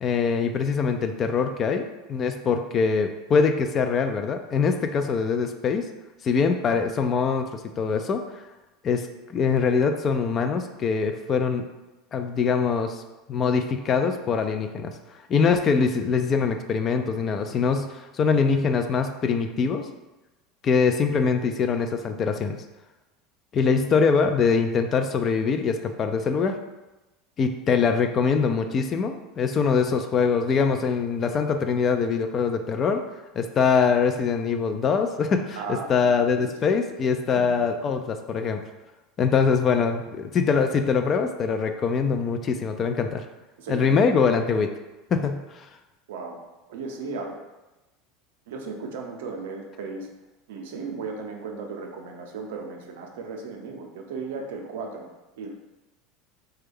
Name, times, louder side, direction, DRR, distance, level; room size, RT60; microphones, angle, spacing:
voice 1, 0.0-5.9 6.2-8.2 8.8-9.1 9.3-11.6 12.1-13.0 13.3-14.9 15.3-19.9 20.6-22.6 23.5-26.6 27.4-33.0 33.4-38.6 39.2-43.2 43.7-44.7 45.1-45.4, left 5 dB, 40° left, 7 dB, 0.3 m, -23 dB
voice 2, 35.6-36.7 37.4-37.6 43.6-44.2 46.1-47.4 48.5-50.1 50.5-55.1 55.4-55.5, right 4 dB, 80° right, 2 dB, 0.5 m, -36 dB
3.3 x 2.3 x 3.4 m, 1.1 s
hypercardioid pair, 95°, 0 cm